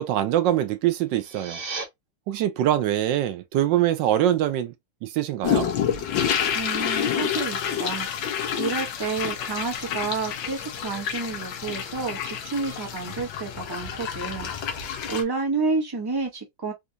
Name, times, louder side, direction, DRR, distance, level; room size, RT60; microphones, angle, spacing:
voice 1, 0.0-1.6 2.3-4.7 5.0-5.7, right 12 dB, 75° right, 1.1 m, -23 dB
sound 1, 1.0-1.8, right 4 dB, 40° right, 1.5 m, -35 dB
sound 2, 5.4-15.2, left 8 dB, 70° left, 1.5 m, -28 dB
voice 2, 6.5-16.7, right 4 dB, 20° right, 0.6 m, -30 dB
4.3 x 2.4 x 2.7 m
omnidirectional pair, 2.2 m